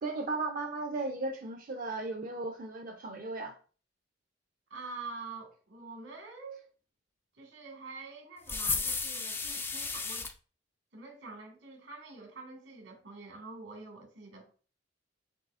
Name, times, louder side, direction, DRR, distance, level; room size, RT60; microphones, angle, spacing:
voice 1, 0.0-3.5, right 3 dB, 45° right, 0.5 m, -36 dB
voice 2, 4.7-6.7 7.4-10.3 10.9-14.5, right 3 dB, 80° right, 1.8 m, -46 dB
sound 1, 8.5-10.3, left 4 dB, 10° left, 0.3 m, -33 dB
7.4 x 2.8 x 2.4 m
head